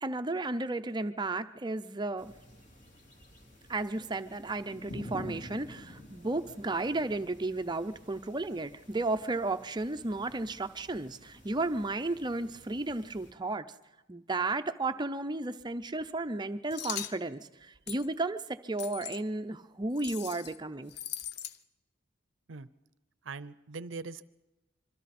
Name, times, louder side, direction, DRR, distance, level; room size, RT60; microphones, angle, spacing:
voice 1, 0.0-2.3 3.7-13.7 14.1-20.9, right 2 dB, 20° right, 10 dB, 0.6 m, -33 dB
sound 1, 2.2-13.3, left 1 dB, 40° left, 3.0 m, -50 dB
sound 2, 16.7-17.2 17.9-18.1 18.8-19.2 20.0-20.6 20.9-21.6, left 10 dB, 55° left, 0.7 m, -40 dB
voice 2, 23.2-24.3, right 4 dB, 70° right, 16 dB, 0.6 m, -41 dB
25.5 x 24.0 x 4.3 m, 1.1 s
head